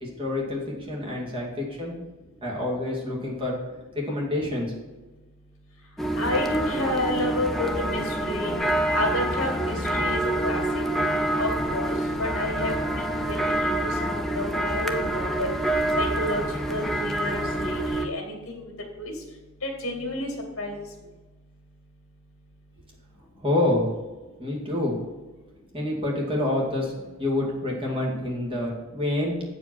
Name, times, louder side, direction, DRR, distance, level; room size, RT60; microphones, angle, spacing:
voice 1, 0.0-0.6 0.9-2.0 2.4-3.6 3.9-4.7 23.4-23.9 24.4-24.9 25.7-26.9 27.2-29.4, left 1 dB, 25° right, -3 dB, 2.4 m, -27 dB
sound 1, 6.0-18.1, right 1 dB, ahead, 0.6 m, -27 dB
voice 2, 6.2-8.6 8.9-10.6 11.4-13.8 14.0-15.5 16.0-16.4 16.7-18.7 19.0-19.1 19.6-20.3 20.6-20.9, left 1 dB, 65° left, 2 dB, 2.3 m, -30 dB
8.3 x 5.1 x 6.3 m, 1.2 s
head